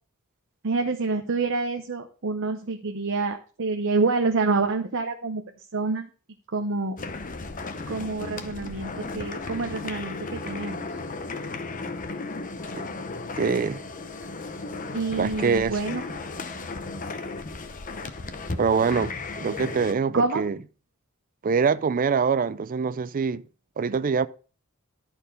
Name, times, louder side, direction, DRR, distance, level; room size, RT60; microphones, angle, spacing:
voice 1, 0.6-6.1 6.5-7.0 7.9-11.0 14.9-16.0 20.1-20.4, right 3 dB, 60° right, 0.8 m, -27 dB
sound 1, 7.0-19.9, left 3 dB, 35° left, 0.8 m, -35 dB
voice 2, 13.4-13.8 15.2-15.8 18.6-20.6 21.4-23.4 23.8-24.3, right 5 dB, 40° right, 0.4 m, -24 dB
12.0 x 4.5 x 5.2 m
head